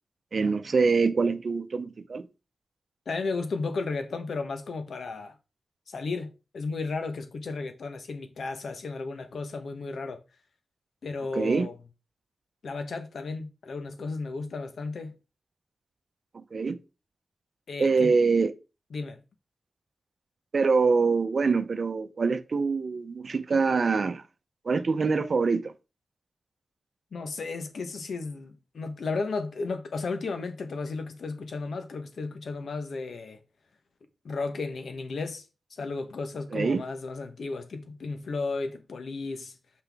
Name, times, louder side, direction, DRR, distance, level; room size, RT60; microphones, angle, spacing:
voice 1, 0.3-2.3 11.3-11.7 16.3-16.8 17.8-18.5 20.5-24.2 24.6-25.7 36.5-36.8, right 4 dB, 55° right, 0.7 m, -24 dB
voice 2, 3.1-5.3 5.9-10.2 11.0-11.7 12.6-15.1 17.7-18.1 18.9-19.2 27.1-33.4 34.2-35.4 35.8-39.5, left 3 dB, 75° left, 1.1 m, -34 dB
6.6 x 5.8 x 3.5 m
wide cardioid pair, 90°, 0 cm